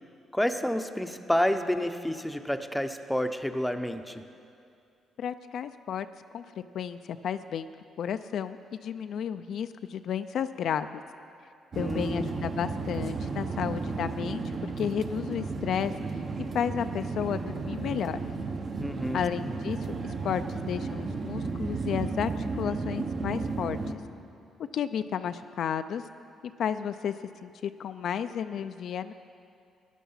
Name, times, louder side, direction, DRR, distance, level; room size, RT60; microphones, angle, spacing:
voice 1, 0.3-4.2 11.7-12.4 18.8-19.6, left 1 dB, 5° left, 7 dB, 0.7 m, -30 dB
voice 2, 5.2-6.1 6.3-6.5 6.7-7.7 8.0-11.0 11.8-14.4 14.8-15.9 16.5-18.2 19.1-19.8 20.0-20.4 20.7-24.0 24.7-26.0 26.6-27.1 27.4-29.1, left 8 dB, 70° left, 10 dB, 0.4 m, -32 dB
sound 1, 11.7-23.9, right 4 dB, 45° right, 1.2 m, -33 dB
14.0 x 10.0 x 5.6 m, 2.5 s
cardioid pair, 90°, 0 cm